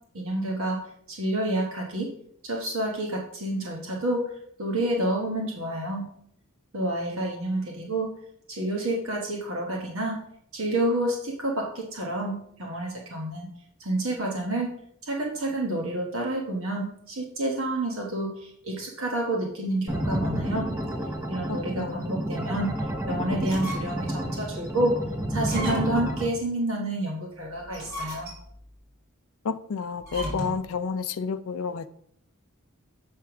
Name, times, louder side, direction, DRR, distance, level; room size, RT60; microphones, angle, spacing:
voice 1, 0.1-2.1 2.4-4.3 4.6-6.1 6.7-8.1 8.5-10.2 10.5-13.5 13.8-14.7 15.0-20.7 21.3-22.8 23.1-25.0 25.3-28.3, right 1 dB, 65° right, 1.1 m, -29 dB
sound 1, 19.9-26.3, right 1 dB, 10° right, 0.7 m, -30 dB
sound 2, 23.4-24.1 24.6-24.7 25.4-26.1 27.6-28.6 30.0-30.7, equal, 45° right, 3.3 m, -36 dB
voice 2, 29.5-32.0, left 5 dB, 70° left, 0.4 m, -30 dB
7.5 x 3.4 x 5.8 m
head